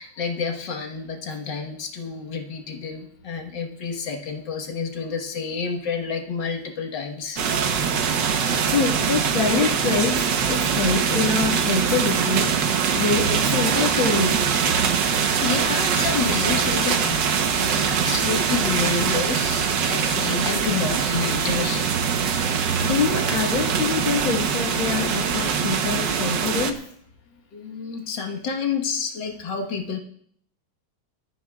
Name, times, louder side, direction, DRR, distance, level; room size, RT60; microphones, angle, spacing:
voice 1, 0.0-7.4 14.8-15.1 15.4-17.4 17.7-21.8 22.2-22.4 25.7-25.9 27.5-30.0, left 5 dB, 70° left, 3 dB, 2.1 m, -29 dB
sound 1, 7.4-26.7, right 6 dB, 70° right, 1.7 m, -23 dB
voice 2, 8.2-14.5 22.4-26.9, left 4 dB, 90° left, -3 dB, 2.6 m, -25 dB
21.5 x 13.0 x 2.4 m, 0.65 s
omnidirectional pair, 2.1 m